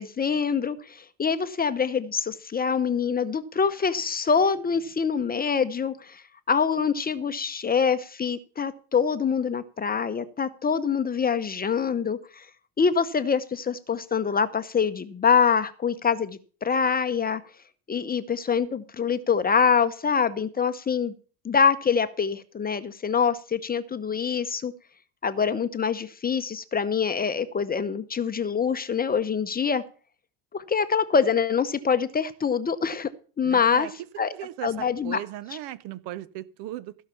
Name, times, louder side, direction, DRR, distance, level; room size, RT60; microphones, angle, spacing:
voice 1, 0.0-6.2 6.5-12.5 12.8-17.4 17.9-21.1 21.4-24.7 25.2-29.8 30.5-33.1 33.4-33.9 34.2-34.3 34.6-35.2, left 6 dB, 20° left, 0.7 m, -25 dB
voice 2, 33.4-33.9 34.3-37.0, right 14 dB, 65° right, 1.0 m, -37 dB
15.5 x 5.7 x 6.9 m
supercardioid pair, 115°, 45 cm